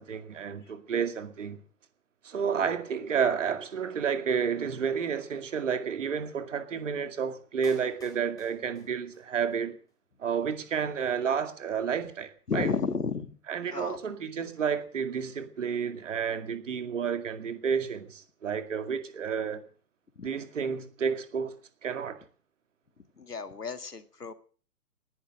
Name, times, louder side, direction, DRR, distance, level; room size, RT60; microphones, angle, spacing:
voice 1, 0.0-1.6 2.2-9.8 10.2-12.7 13.5-19.6 20.2-21.6 21.8-22.2, right 7 dB, 50° right, 2.3 m, -31 dB
Clapping, 7.6-9.6 9.9-10.0, left 3 dB, 5° left, 4.6 m, -54 dB
voice 2, 12.5-13.4 13.7-14.0 20.2-20.3 23.0-24.3, left 5 dB, 75° left, 2.1 m, -33 dB
19.0 x 11.5 x 6.5 m
figure-of-eight pair, 135°, 48 cm